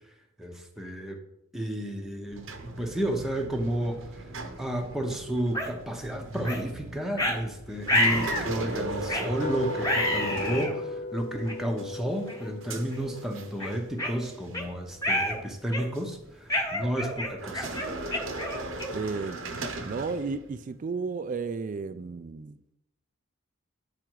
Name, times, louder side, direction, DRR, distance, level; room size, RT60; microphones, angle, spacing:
voice 1, 0.4-1.2 1.5-2.5 2.8-4.2 4.6-17.8, right 1 dB, ahead, 2 dB, 0.8 m, -32 dB
sound 1, 2.3-11.3 11.8-13.9 14.2-14.5 15.2-16.1 17.3-20.7, right 2 dB, 70° right, 0.9 m, -38 dB
sound 2, 5.5-5.7 6.4-6.6 7.2-7.4 7.9-8.5 9.1-9.3 9.8-10.7 11.5-11.6 12.3-12.5 12.9-13.0 13.6-14.7 15.0-15.4 15.7-16.0 16.5-19.1, left 1 dB, 15° left, 1.2 m, -28 dB
sound 3, 9.4-15.5, left 3 dB, 40° left, 0.4 m, -38 dB
voice 2, 18.9-19.4 19.8-22.6, right 4 dB, 40° right, 11 dB, 0.3 m, -33 dB
9.1 x 4.8 x 4.6 m, 0.85 s
head